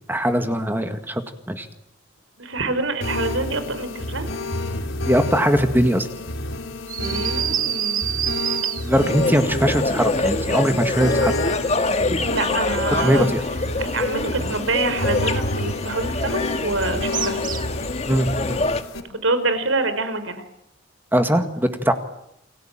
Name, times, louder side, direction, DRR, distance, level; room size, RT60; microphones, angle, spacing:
voice 1, 0.1-1.2 1.5-1.7 5.1-6.1 8.8-11.4 13.0-13.4 18.0-18.6 21.1-21.9, equal, 10° right, 7 dB, 1.9 m, -20 dB
voice 2, 2.4-4.3 7.0-8.0 12.3-13.3 13.8-17.4 19.2-20.4, right 2 dB, 80° right, 11 dB, 4.9 m, -26 dB
sound 1, 3.0-19.0, left 2 dB, 80° left, 4.0 m, -29 dB
sound 2, 6.9-9.2 17.1-17.9, right 10 dB, 45° right, 1.4 m, -26 dB
sound 3, 8.9-18.8, left 2 dB, 30° left, 1.8 m, -25 dB
29.0 x 21.5 x 9.0 m, 0.80 s
head